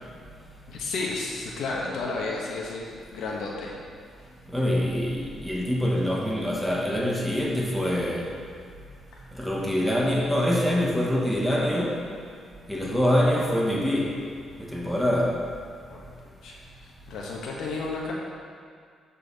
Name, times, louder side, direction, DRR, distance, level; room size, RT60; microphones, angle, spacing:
voice 1, 0.7-3.7 15.9-16.0 16.4-18.1, left 3 dB, 75° left, -3 dB, 1.3 m, -32 dB
voice 2, 4.5-8.3 9.3-12.1 12.7-14.2 14.6-15.5, equal, ahead, -3 dB, 1.5 m, -25 dB
12.0 x 4.3 x 4.1 m, 2.1 s
cardioid pair, 95°, 0 cm